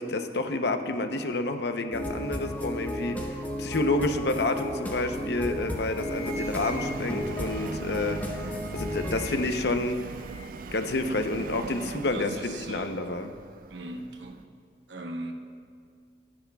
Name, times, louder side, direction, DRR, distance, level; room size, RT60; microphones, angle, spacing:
voice 1, 0.0-10.1 10.7-13.3, left 2 dB, 65° left, 7 dB, 0.8 m, -29 dB
sound 1, 1.9-9.2, left 1 dB, 10° left, 1.0 m, -34 dB
Subway metro underground, 3.1-14.4, right 4 dB, 50° right, 0.3 m, -42 dB
sound 2, 5.7-7.3 8.1-9.6 9.9-10.7, left 1 dB, 20° right, 2.4 m, -45 dB
voice 2, 12.1-13.0 13.7-14.6 14.9-15.3, right 2 dB, 90° right, 4 dB, 1.0 m, -39 dB
26.0 x 10.0 x 2.3 m, 2.2 s
head